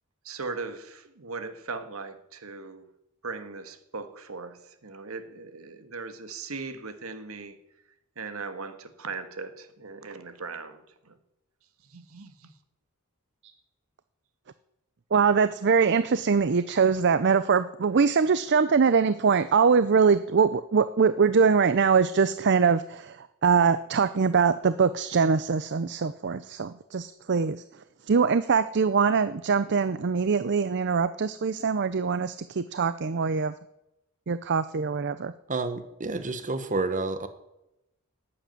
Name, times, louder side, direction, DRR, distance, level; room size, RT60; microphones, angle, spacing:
voice 1, 0.2-2.9 3.2-7.6 8.2-11.2 11.8-12.5, right 4 dB, 75° right, 1.6 m, -39 dB
voice 2, 15.1-27.6 28.1-33.5 34.3-35.3, right 5 dB, 55° right, 0.6 m, -23 dB
voice 3, 35.5-37.3, right 3 dB, 35° right, 1.2 m, -29 dB
12.0 x 8.7 x 9.2 m
head